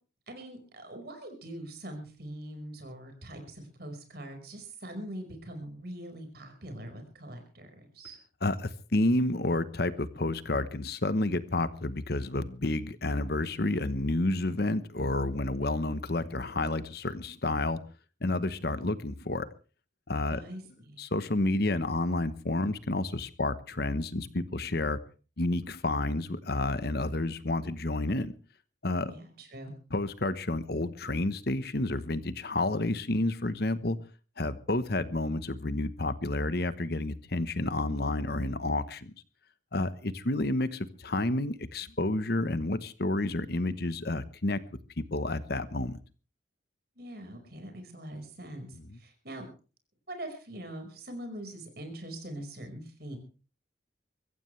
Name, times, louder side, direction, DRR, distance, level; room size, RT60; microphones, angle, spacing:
voice 1, 0.3-8.2 20.3-21.0 29.1-29.7 47.0-48.7 49.0-49.4 50.1-53.2, right 1 dB, 55° right, 6 dB, 5.1 m, -43 dB
voice 2, 8.4-17.8 18.2-19.5 20.1-20.4 21.0-25.0 25.4-28.3 28.8-29.1 29.9-34.0 34.4-39.1 39.7-44.6 45.0-46.0 48.9-49.0, left 2 dB, 55° left, 13 dB, 1.1 m, -30 dB
23.5 x 15.0 x 3.3 m, 0.36 s
head